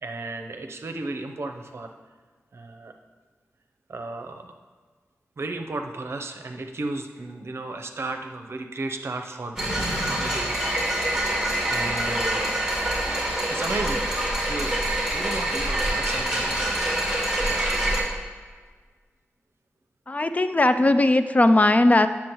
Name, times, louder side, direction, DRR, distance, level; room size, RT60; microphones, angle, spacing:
voice 1, 0.0-1.9 2.5-2.9 3.9-4.5 5.4-10.6 11.7-12.6 13.5-14.1 14.5-16.8, right 2 dB, 60° right, 5 dB, 0.7 m, -34 dB
sound 1, 9.6-18.0, right 1 dB, 10° right, 2.2 m, -25 dB
voice 2, 20.1-22.1, left 2 dB, 30° left, 10 dB, 0.4 m, -18 dB
9.4 x 7.1 x 3.0 m, 1.5 s
wide cardioid pair, 65°, 5 cm